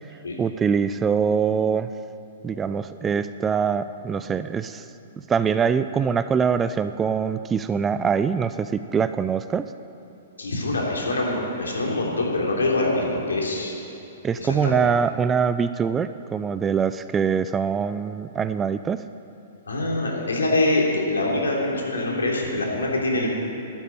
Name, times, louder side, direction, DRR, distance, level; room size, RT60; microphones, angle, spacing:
voice 1, 0.4-1.9 2.4-4.8 5.3-9.6 14.2-19.0, right 6 dB, 20° right, 12 dB, 0.5 m, -23 dB
voice 2, 10.4-13.7 14.4-14.9 19.7-23.3, left 2 dB, 80° left, -2 dB, 3.5 m, -24 dB
12.0 x 9.5 x 9.5 m, 2.9 s
figure-of-eight pair, 115°, 0 cm